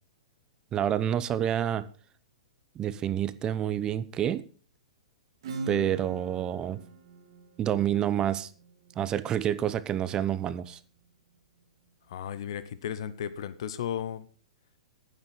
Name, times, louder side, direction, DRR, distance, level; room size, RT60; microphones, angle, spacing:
voice 1, 0.7-1.9 2.8-4.4 5.7-6.8 7.6-8.5 9.0-10.8, right 10 dB, 25° right, 15 dB, 0.7 m, -28 dB
Acoustic guitar / Strum, 5.4-10.8, right 2 dB, 55° right, 2.1 m, -42 dB
voice 2, 12.1-14.3, left 9 dB, 55° left, 14 dB, 0.8 m, -34 dB
10.5 x 9.6 x 5.2 m, 0.39 s
figure-of-eight pair, 110°, 3 cm